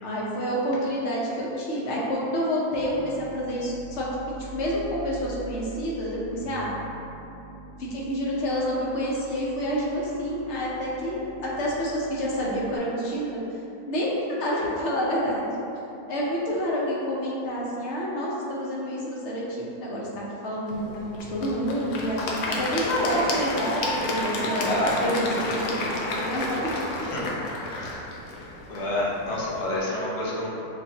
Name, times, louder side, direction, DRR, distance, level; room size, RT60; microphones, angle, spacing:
voice 1, 0.0-6.7 7.9-13.4 13.9-15.4 16.1-22.2 22.6-24.7 25.0-25.3 25.6-26.7, equal, 50° left, -5 dB, 1.1 m, -28 dB
sound 1, 2.8-12.8, right 4 dB, 30° right, 0.4 m, -44 dB
Applause / Crowd, 20.7-29.8, left 2 dB, 75° left, 1.1 m, -31 dB
voice 2, 24.6-25.0 27.0-27.4 27.7-28.1 28.7-30.5, left 1 dB, 35° left, -5 dB, 0.5 m, -29 dB
7.0 x 2.6 x 2.8 m, 2.8 s
omnidirectional pair, 1.7 m